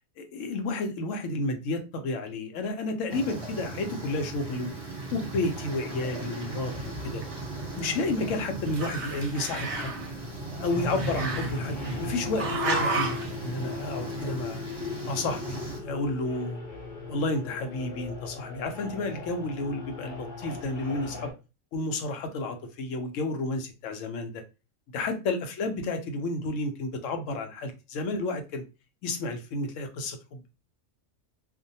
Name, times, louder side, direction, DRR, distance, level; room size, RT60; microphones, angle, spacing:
voice 1, 0.3-4.7 5.1-7.2 7.7-10.0 10.6-14.6 15.1-16.6 17.1-21.3 21.7-24.4 24.9-28.6 29.0-30.5, left 2 dB, 75° left, 6 dB, 0.9 m, -31 dB
sound 1, 3.1-15.8, right 3 dB, 25° right, 1.0 m, -38 dB
sound 2, 5.8-21.3, left 4 dB, 50° left, 0.6 m, -39 dB
Growling, 7.1-8.4 8.7-10.1 11.0-12.0 12.4-13.3, right 3 dB, 65° right, 0.8 m, -32 dB
2.6 x 2.1 x 2.7 m, 0.30 s
omnidirectional pair, 1.3 m